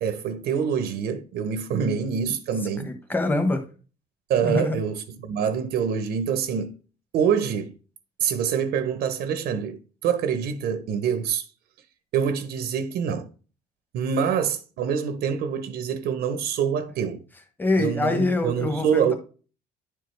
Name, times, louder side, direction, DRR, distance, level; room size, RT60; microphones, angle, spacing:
voice 1, 0.0-2.9 4.3-6.7 7.1-7.7 8.2-11.5 12.1-13.3 13.9-17.2 17.8-19.1, right 7 dB, 75° right, 0.8 m, -25 dB
voice 2, 2.8-3.6 4.4-4.8 17.6-19.1, left 2 dB, 10° left, 1.1 m, -24 dB
9.9 x 4.6 x 3.2 m
cardioid pair, 110°, 17 cm